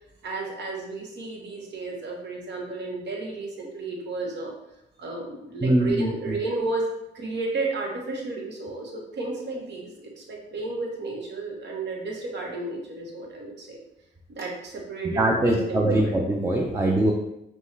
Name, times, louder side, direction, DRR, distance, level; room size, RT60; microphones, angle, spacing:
voice 1, 0.2-4.5 5.0-6.8 7.1-13.8 14.3-16.1, right 3 dB, 65° right, 0 dB, 1.1 m, -32 dB
voice 2, 5.6-6.3 15.0-17.1, right 1 dB, 15° right, 0 dB, 0.5 m, -22 dB
5.2 x 2.3 x 3.2 m, 0.86 s
cardioid pair, 90°, 20 cm